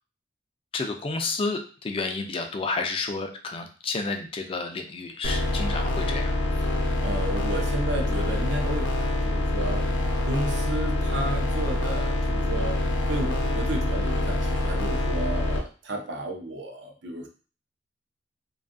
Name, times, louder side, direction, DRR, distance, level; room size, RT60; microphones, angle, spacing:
voice 1, 0.7-6.3, left 3 dB, 30° left, 5 dB, 0.3 m, -30 dB
sound 1, 5.2-15.6, left 1 dB, 75° left, 0.6 m, -26 dB
voice 2, 7.0-9.9 10.3-12.8 13.1-17.3, right 1 dB, 75° right, 2 dB, 0.6 m, -33 dB
2.6 x 2.3 x 2.5 m, 0.37 s
head